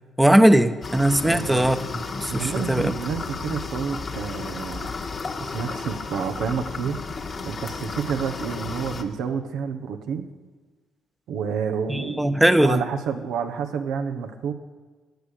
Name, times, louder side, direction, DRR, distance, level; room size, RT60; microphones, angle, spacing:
voice 1, 0.2-2.9 11.9-12.8, right 1 dB, 10° right, 10 dB, 1.1 m, -19 dB
sound 1, 0.8-9.0, left 4 dB, 45° left, 1.6 m, -33 dB
voice 2, 1.2-1.8 2.3-4.9 5.4-7.1 7.4-10.3 11.3-14.5, right 6 dB, 75° right, 7 dB, 1.3 m, -29 dB
16.5 x 9.8 x 6.7 m, 1.4 s
hypercardioid pair, 55°, 0 cm